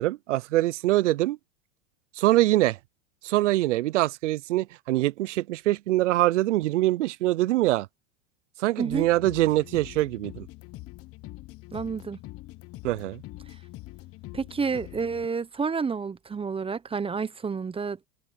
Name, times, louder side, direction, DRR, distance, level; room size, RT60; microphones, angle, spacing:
voice 1, 0.0-1.4 2.2-2.8 3.2-7.9 8.6-10.5 12.8-13.2, right 16 dB, 80° right, 0.6 m, -24 dB
sound 1, 8.9-15.3, left 18 dB, 40° left, 1.0 m, -44 dB
voice 2, 11.7-12.2 14.3-18.0, right 5 dB, 15° right, 1.1 m, -29 dB
open air
hypercardioid pair, 105°, 35 cm